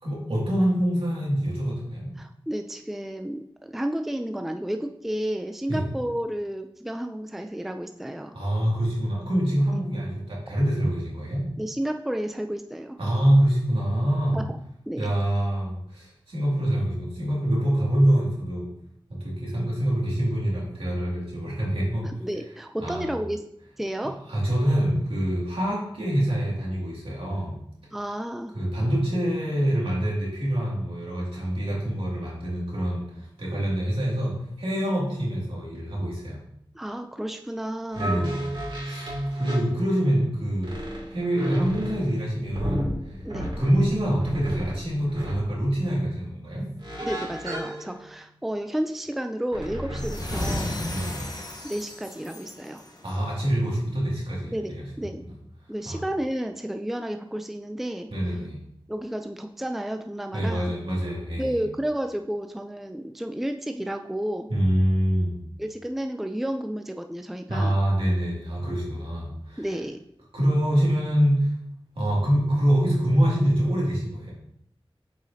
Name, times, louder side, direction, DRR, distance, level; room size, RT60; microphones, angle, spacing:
voice 1, 0.0-2.1 5.7-5.9 8.3-11.5 13.0-14.4 15.0-18.7 19.1-22.1 22.8-23.1 24.3-27.5 28.5-36.4 37.9-40.8 41.1-43.2 43.6-46.7 50.9-51.2 53.0-55.3 55.8-56.0 58.1-58.6 60.3-61.6 64.5-65.4 67.5-69.7 70.3-71.6 71.9-74.3, equal, 75° right, -5 dB, 2.4 m, -25 dB
voice 2, 2.2-8.3 11.6-13.0 14.3-14.4 14.9-15.1 22.0-23.4 23.8-24.2 27.9-28.6 36.7-38.2 43.2-43.5 47.0-50.7 51.6-52.8 54.5-55.2 55.7-58.1 58.9-60.7 61.4-64.5 65.6-67.8 69.6-70.0, right 1 dB, 5° right, 6 dB, 0.4 m, -31 dB
sound 1, 37.9-40.3 40.6-45.4 46.8-48.1 49.5-50.8, equal, 60° right, 2.5 m, -33 dB
sound 2, 50.0-53.3, left 1 dB, 45° left, 1.1 m, -34 dB
7.9 x 4.9 x 2.8 m, 0.74 s
wide cardioid pair, 60°, 10 cm